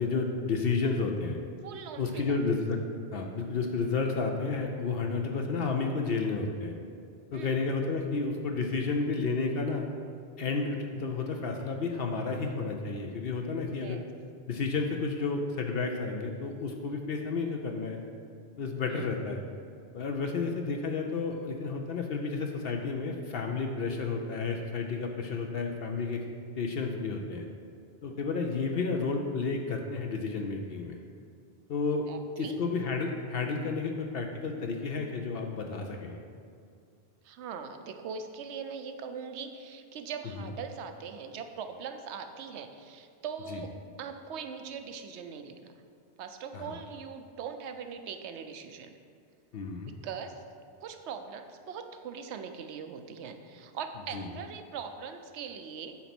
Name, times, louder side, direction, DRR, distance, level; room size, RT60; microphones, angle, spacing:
voice 1, 0.0-1.4 2.0-2.8 3.1-6.7 7.3-9.9 10.4-14.0 14.5-18.0 18.6-19.4 19.9-26.2 26.6-27.5 28.0-31.0 31.7-32.1 32.4-36.2 40.4-40.5 43.5-43.6 46.5-46.7 49.5-49.9 54.1-54.3, left 4 dB, 65° left, 3 dB, 0.8 m, -31 dB
voice 2, 1.6-2.4 7.3-7.6 13.8-14.1 18.9-19.1 20.2-20.6 28.1-28.2 32.1-32.6 37.2-43.7 44.0-45.7 46.2-48.9 49.9-50.4 50.8-56.0, right 6 dB, 80° right, 7 dB, 0.9 m, -41 dB
8.5 x 4.0 x 5.9 m, 2.2 s
omnidirectional pair, 1.1 m